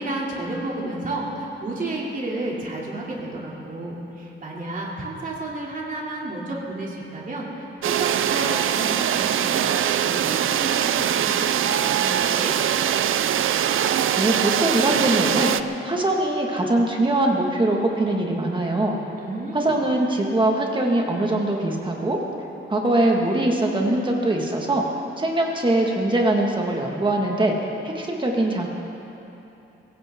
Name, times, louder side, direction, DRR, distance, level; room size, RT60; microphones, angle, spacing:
voice 1, 0.0-12.6 19.2-19.7, right 2 dB, 40° right, -3 dB, 3.0 m, -32 dB
sound 1, 7.8-15.6, right 9 dB, 75° right, 0.5 m, -22 dB
voice 2, 14.2-15.5 15.8-19.0 19.5-22.2 22.7-24.9 25.2-27.5 27.8-28.7, right 1 dB, 25° right, 0 dB, 1.8 m, -22 dB
22.5 x 16.5 x 3.8 m, 3.0 s
wide cardioid pair, 145°, 21 cm